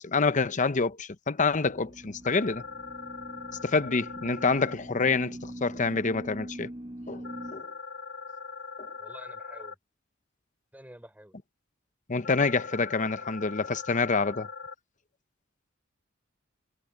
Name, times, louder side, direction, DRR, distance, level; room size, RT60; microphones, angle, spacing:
voice 1, 0.0-2.6 3.6-6.7 7.1-7.7 8.8-8.9 12.1-14.5, left 4 dB, 40° left, 0.8 m, -27 dB
sound 1, 1.7-7.5, right 1 dB, 25° right, 1.5 m, -43 dB
sound 2, 2.2-4.7 7.2-9.7 12.2-14.7, left 4 dB, 65° left, 4.5 m, -41 dB
voice 2, 9.0-9.8 10.7-11.4, right 1 dB, 10° right, 4.8 m, -49 dB
head